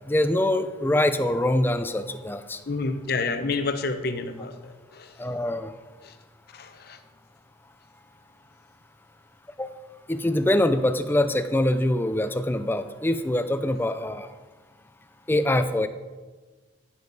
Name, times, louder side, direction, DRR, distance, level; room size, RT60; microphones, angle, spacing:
voice 1, 0.1-2.6 5.2-5.7 9.6-9.7 10.1-14.3 15.3-15.9, left 1 dB, 10° left, 10 dB, 0.4 m, -24 dB
voice 2, 2.7-5.2 6.0-6.1 6.5-7.0, left 3 dB, 55° left, 9 dB, 0.8 m, -29 dB
14.5 x 7.1 x 4.0 m, 1.3 s
head